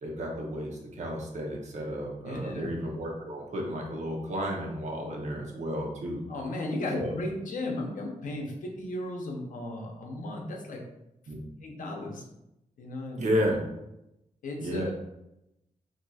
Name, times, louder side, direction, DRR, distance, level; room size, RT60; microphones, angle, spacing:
voice 1, 0.0-6.3 6.9-7.1 11.3-11.4 13.2-13.6 14.6-14.9, equal, 60° right, -1 dB, 0.7 m, -32 dB
voice 2, 2.2-2.7 6.3-10.8 11.2-11.3 11.6-12.2 12.8-13.3 14.4-14.9, left 1 dB, 75° left, 0 dB, 0.7 m, -35 dB
4.0 x 2.7 x 2.3 m, 0.87 s
wide cardioid pair, 180°, 14 cm